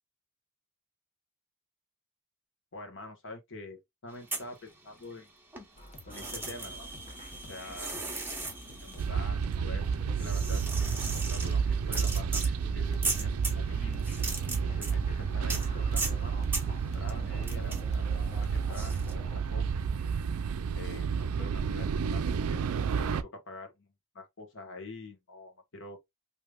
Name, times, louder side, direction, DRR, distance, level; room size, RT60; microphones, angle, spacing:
voice 1, 2.7-5.3 6.1-6.9 7.5-7.9 8.8-14.0 14.6-16.3 16.9-19.2 19.5-19.7 20.8-22.6 23.0-26.0, left 2 dB, 60° left, 1.2 m, -46 dB
sound 1, 4.1-5.2 5.5-19.1, right 3 dB, 10° right, 1.0 m, -39 dB
sound 2, 5.8-19.4, left 1 dB, 35° left, 0.7 m, -49 dB
sound 3, 9.0-23.2, right 6 dB, 75° right, 0.4 m, -31 dB
3.4 x 2.8 x 2.3 m
head